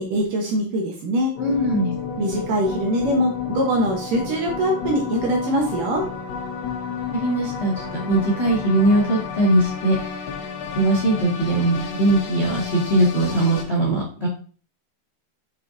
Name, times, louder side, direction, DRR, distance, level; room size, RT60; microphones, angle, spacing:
voice 1, 0.0-1.3 2.2-6.1, equal, 70° right, 0 dB, 2.2 m, -23 dB
sound 1, 1.4-13.6, left 6 dB, 60° left, 3.0 m, -31 dB
voice 2, 1.4-2.3 6.9-10.2 10.7-14.3, right 1 dB, 45° left, -4 dB, 0.8 m, -21 dB
7.2 x 6.3 x 2.6 m, 0.40 s
omnidirectional pair, 4.9 m